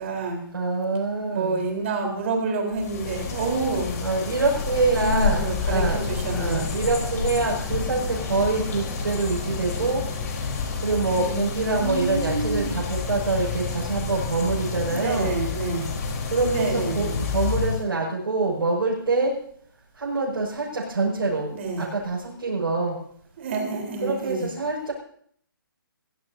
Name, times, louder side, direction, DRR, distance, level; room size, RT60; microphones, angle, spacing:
voice 1, 0.0-0.4 1.3-4.0 5.0-6.7 11.2-12.7 14.9-15.9 16.4-17.2 21.5-21.9 23.4-24.5, right 3 dB, 35° right, 1 dB, 4.1 m, -28 dB
voice 2, 0.5-1.6 4.0-6.0 6.3-10.1 10.8-15.3 16.3-19.4 20.0-21.5 21.8-23.0 24.0-24.9, right 3 dB, 90° right, -5 dB, 6.4 m, -25 dB
sound 1, 2.7-17.8, left 5 dB, 45° left, 4.0 m, -29 dB
sound 2, 4.5-10.3, left 4 dB, 10° left, 1.2 m, -37 dB
23.5 x 16.5 x 2.8 m, 0.62 s
hypercardioid pair, 170°, 12 cm